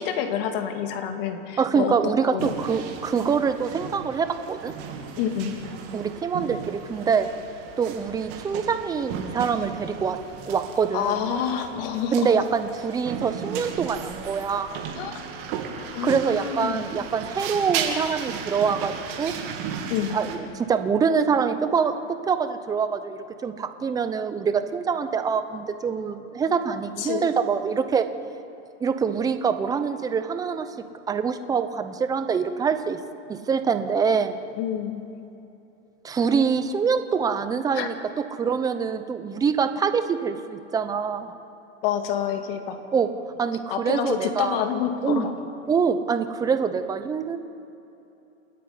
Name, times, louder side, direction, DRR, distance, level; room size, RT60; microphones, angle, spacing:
voice 1, 0.0-2.5 5.2-5.6 10.9-12.3 15.0-15.2 15.9-16.9 19.9-20.2 27.0-27.3 34.6-35.0 37.7-37.9 41.8-42.8 43.7-45.3, left 8 dB, 50° left, 6 dB, 2.3 m, -28 dB
voice 2, 1.6-4.7 5.9-7.3 7.8-10.2 10.5-11.3 12.1-14.8 16.0-19.3 20.1-28.0 28.8-30.7 31.1-33.0 33.3-34.4 36.0-37.9 38.3-41.3 42.9-43.1 43.4-44.6 45.0-45.3 45.7-47.4, right 6 dB, 10° right, 10 dB, 0.7 m, -25 dB
sound 1, 2.4-20.4, right 7 dB, 50° right, 2.8 m, -35 dB
28.5 x 10.0 x 9.5 m, 2.9 s
supercardioid pair, 155°, 37 cm